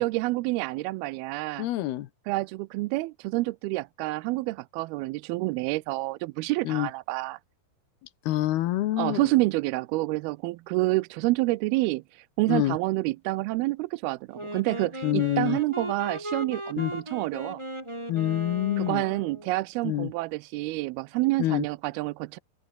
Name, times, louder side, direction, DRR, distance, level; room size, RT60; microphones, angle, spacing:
voice 1, 0.0-1.7 2.3-7.4 9.0-17.6 18.8-22.4, right 20 dB, 80° right, 2.4 m, -28 dB
voice 2, 1.6-2.1 6.6-6.9 8.3-9.3 12.5-12.8 15.0-15.6 16.8-16.9 18.1-19.0 19.8-20.1 21.4-21.6, left 14 dB, 75° left, 3.0 m, -26 dB
Wind instrument woodwind instrument, 14.3-19.5, right 1 dB, 5° right, 4.6 m, -37 dB
open air
omnidirectional pair, 4.7 m